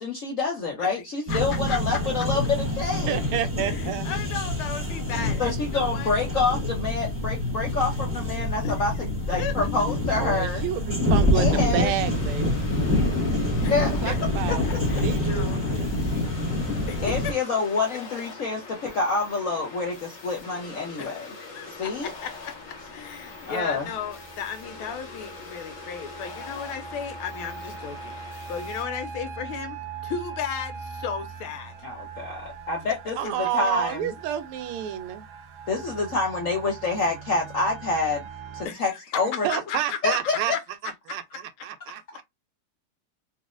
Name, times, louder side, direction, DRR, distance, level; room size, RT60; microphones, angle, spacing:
voice 1, 0.0-3.2 5.4-10.6 11.3-11.9 13.6-14.0 17.0-21.3 21.8-22.1 23.5-23.9 31.8-34.1 35.7-38.2 38.5-39.5 40.0-40.6, left 3 dB, 65° left, 0.8 m, -27 dB
sound 1, 1.3-17.3, left 1 dB, 10° right, 0.6 m, -26 dB
voice 2, 1.7-2.3 3.6-6.1 8.6-8.7 9.3-9.5 13.6-13.8 14.0-14.2 14.6-15.7 16.0-16.2 16.9-17.3 21.0-22.5 22.9-31.7 33.2-33.3 38.6-39.0 39.5-40.2, left 7 dB, 80° left, 1.6 m, -35 dB
voice 3, 3.1-4.1 10.2-12.7 14.0-14.6 15.0-16.0 33.2-35.2 39.4-40.5 40.8-41.2 41.6-42.0, right 10 dB, 90° right, 1.5 m, -29 dB
sound 2, 12.0-28.8, left 4 dB, 45° left, 1.2 m, -43 dB
sound 3, 21.5-38.7, right 5 dB, 75° right, 0.9 m, -41 dB
4.1 x 2.6 x 2.4 m
omnidirectional pair, 2.4 m